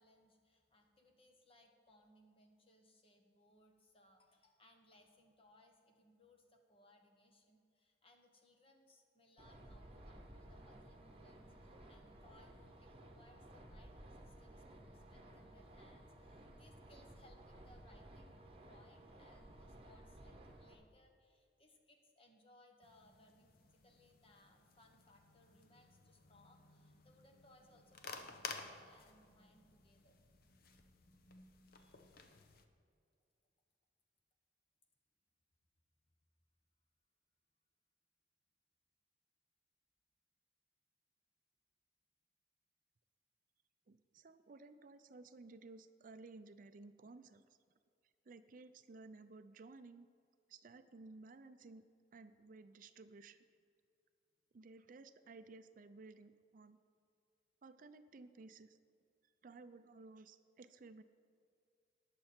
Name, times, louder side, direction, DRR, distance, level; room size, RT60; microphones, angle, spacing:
voice 1, 0.0-30.2 31.7-32.2, left 1 dB, 30° left, 3 dB, 1.4 m, -68 dB
sound 1, 9.4-20.7, right 1 dB, 35° right, 1.1 m, -57 dB
sound 2, 22.8-32.7, left 4 dB, 55° left, 0.9 m, -54 dB
voice 2, 43.9-47.6 48.2-50.1 50.5-51.9 52.1-53.5 54.5-56.8 57.6-58.8 59.4-61.0, right 3 dB, 50° right, 11 dB, 0.5 m, -56 dB
19.0 x 6.8 x 4.4 m, 2.4 s
head